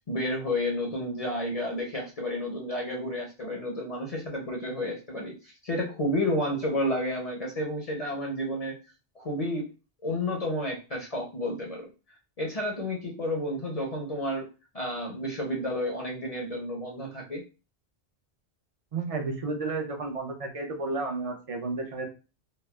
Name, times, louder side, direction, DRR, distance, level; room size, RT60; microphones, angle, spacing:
voice 1, 0.1-8.8 9.2-9.7 10.0-11.9 12.4-14.5 14.7-17.4, left 1 dB, 40° left, -1 dB, 0.7 m, -31 dB
voice 2, 18.9-22.1, right 3 dB, 40° right, 2 dB, 0.6 m, -32 dB
4.1 x 2.0 x 2.2 m, 0.31 s
omnidirectional pair, 1.1 m